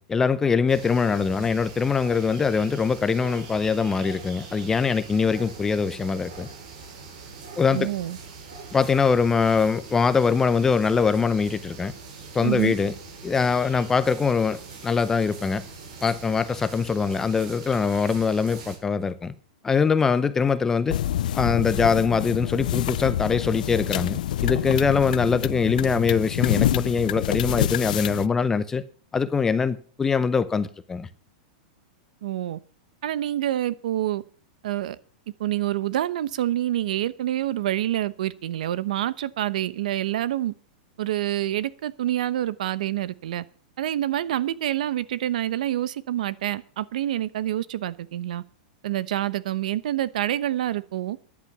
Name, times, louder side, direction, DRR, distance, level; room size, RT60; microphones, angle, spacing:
voice 1, 0.0-6.5 7.6-7.9 8.7-11.9 12.3-12.9 13.2-15.6 16.0-19.3 19.6-21.0 21.3-28.8 29.1-31.1, left 5 dB, 10° left, 0.6 m, -23 dB
sound 1, 0.7-18.8, right 4 dB, 55° right, 5.6 m, -42 dB
voice 2, 7.7-8.2 12.4-12.8 32.2-32.6 33.0-34.2 34.6-35.0 35.4-40.5 41.0-43.4 43.8-48.4 48.8-51.2, right 13 dB, 70° right, 0.9 m, -27 dB
sound 2, 20.9-28.3, left 12 dB, 70° left, 0.5 m, -27 dB
14.5 x 11.0 x 6.0 m
supercardioid pair, 170°, 4 cm